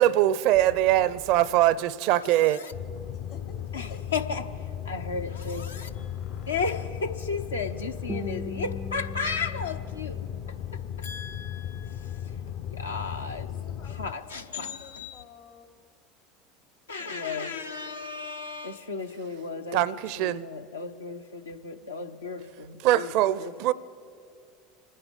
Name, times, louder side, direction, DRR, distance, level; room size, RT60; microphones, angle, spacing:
voice 1, 0.0-2.6 19.7-20.5 22.8-23.7, right 13 dB, 60° right, 0.5 m, -22 dB
voice 2, 0.5-1.9 3.1-4.1 5.9-6.9 13.2-15.7, left 8 dB, 75° left, 1.8 m, -49 dB
voice 3, 2.2-2.7 3.7-5.9 6.5-12.3 12.6-13.5 13.8-15.2 16.9-19.8 20.2-23.1 23.4-23.5, left 4 dB, 90° left, 0.8 m, -35 dB
sound 1, 2.7-14.1, left 9 dB, 55° left, 0.6 m, -36 dB
Guitar, 8.1-11.1, equal, 5° right, 0.3 m, -40 dB
26.0 x 9.9 x 5.2 m
hypercardioid pair, 80°, 0 cm